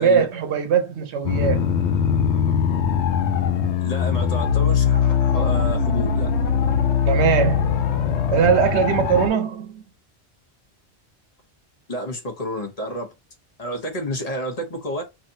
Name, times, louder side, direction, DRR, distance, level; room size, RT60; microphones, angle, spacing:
voice 1, 0.0-1.7 7.1-7.7 8.3-9.8, right 7 dB, 80° right, 1.0 m, -20 dB
sound 1, 1.2-9.3, left 7 dB, 85° left, 1.0 m, -21 dB
voice 2, 3.8-6.3 11.9-13.1 13.6-15.0, equal, 40° left, 0.9 m, -29 dB
3.2 x 2.8 x 2.6 m
omnidirectional pair, 1.1 m